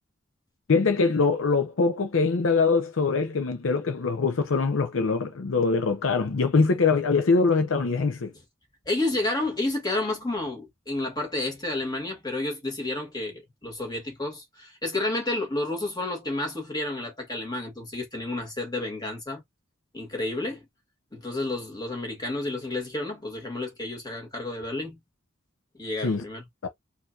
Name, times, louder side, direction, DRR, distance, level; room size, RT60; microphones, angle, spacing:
voice 1, 0.7-8.3 26.0-26.2 26.6-26.7, left 4 dB, 75° left, 0.6 m, -23 dB
voice 2, 8.9-19.4 19.9-20.6 21.1-25.0 25.8-26.4, left 2 dB, 20° left, 1.9 m, -30 dB
4.4 x 2.6 x 2.4 m
head